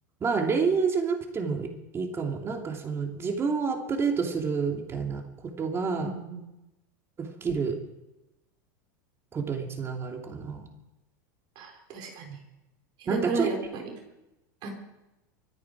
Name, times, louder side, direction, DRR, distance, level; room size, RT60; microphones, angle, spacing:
voice 1, 0.2-5.2 5.6-6.1 7.2-7.8 9.3-10.7 12.2-12.4 13.1-13.5, right 5 dB, 25° right, 3 dB, 2.9 m, -29 dB
voice 2, 6.0-6.4 11.5-12.2 13.0-13.9 14.6-14.7, right 4 dB, 50° right, 3 dB, 4.9 m, -33 dB
24.5 x 9.9 x 4.9 m, 0.94 s
hypercardioid pair, 110°, 10 cm